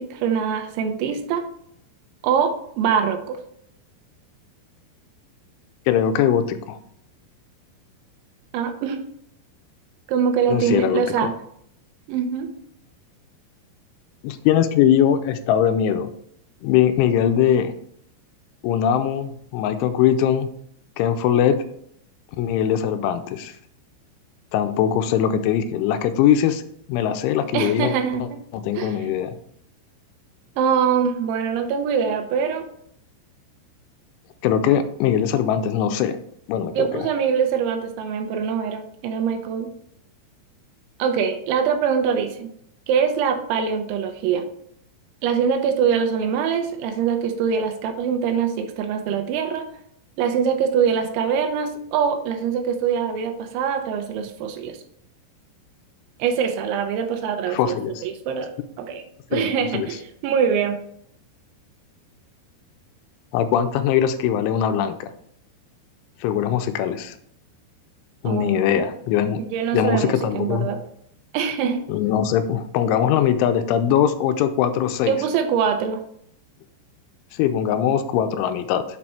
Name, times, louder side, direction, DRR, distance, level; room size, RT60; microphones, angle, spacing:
voice 1, 0.0-1.5 2.2-3.4 8.5-9.0 10.1-11.3 12.1-12.5 27.5-28.4 28.8-29.0 30.6-32.7 36.8-39.7 41.0-42.5 42.9-44.5 45.2-49.7 50.2-54.8 56.2-58.5 58.8-59.0 59.3-60.8 68.2-68.8 69.5-70.8 71.3-71.8 75.1-76.0, right 7 dB, 80° right, 6 dB, 3.0 m, -23 dB
voice 2, 5.9-6.8 10.5-11.3 14.2-16.1 16.6-17.7 18.6-20.5 21.0-21.6 22.4-23.5 24.5-26.6 26.9-27.9 28.2-29.4 34.4-36.2 36.5-37.1 57.5-57.9 59.3-59.5 59.7-59.9 63.3-65.1 66.2-67.2 68.2-69.4 69.7-70.7 71.9-75.2 77.3-78.8, left 9 dB, 85° left, 9 dB, 3.0 m, -21 dB
7.5 x 4.4 x 4.2 m, 0.70 s
omnidirectional pair, 5.4 m